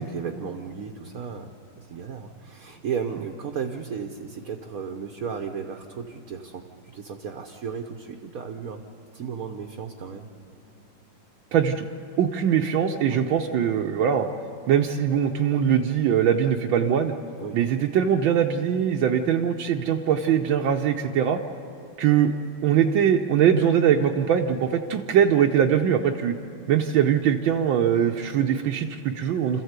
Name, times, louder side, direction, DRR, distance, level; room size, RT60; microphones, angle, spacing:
voice 1, 0.1-8.8 9.1-10.3 13.1-13.2 17.4-17.6, right 6 dB, 55° right, 4 dB, 1.2 m, -34 dB
voice 2, 11.5-11.9 12.2-14.3 14.7-17.1 17.5-21.4 22.0-22.3 22.6-26.4 26.7-29.6, right 8 dB, 75° right, 2 dB, 1.5 m, -22 dB
27.0 x 14.5 x 8.1 m, 2.9 s
omnidirectional pair, 2.3 m